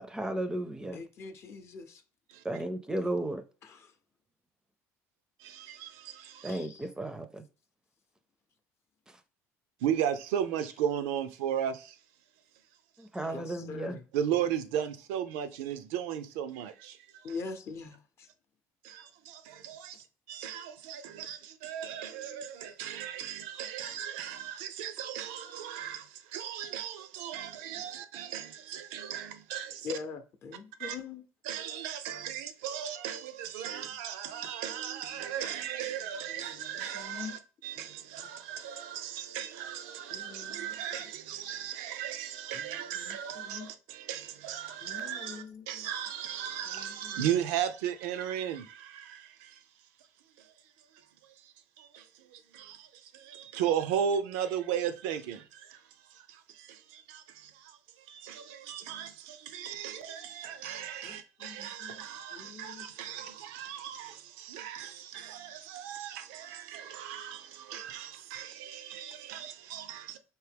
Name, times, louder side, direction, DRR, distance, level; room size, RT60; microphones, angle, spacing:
voice 1, 0.0-1.0 2.4-3.4 6.4-7.4 13.0-14.0, right 1 dB, 10° right, 0.5 m, -34 dB
voice 2, 0.9-2.0 3.6-3.8 6.5-6.9 13.2-14.0 14.4-14.5 17.2-18.3 29.8-31.2 36.3-37.4 37.8-37.9 38.2-38.3 40.1-40.8 42.5-43.7 44.8-45.9 46.6-47.2 61.0-62.1 62.3-62.9, left 5 dB, 45° left, 0.6 m, -44 dB
voice 3, 5.4-6.6 9.8-12.0 14.1-17.3 18.8-29.9 30.8-31.0 31.5-49.6 50.4-50.5 51.2-70.2, right 9 dB, 90° right, 0.5 m, -36 dB
4.7 x 2.7 x 3.4 m
supercardioid pair, 105°, 6 cm